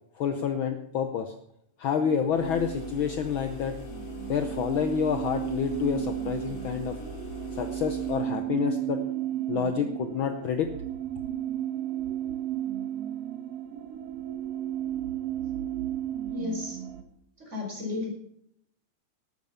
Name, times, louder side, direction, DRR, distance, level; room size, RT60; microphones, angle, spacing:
voice 1, 0.2-1.3 1.8-3.8 4.3-7.0 7.5-9.0 9.5-10.7, left 7 dB, 75° left, 8 dB, 1.2 m, -28 dB
sound 1, 2.0-17.0, right 12 dB, 65° right, 1.9 m, -34 dB
sound 2, 2.3-8.3, left 3 dB, 40° left, 3.0 m, -42 dB
voice 2, 16.3-16.8 17.4-18.1, left 3 dB, 20° right, -1 dB, 5.2 m, -33 dB
12.5 x 9.4 x 7.0 m, 0.72 s
omnidirectional pair, 3.4 m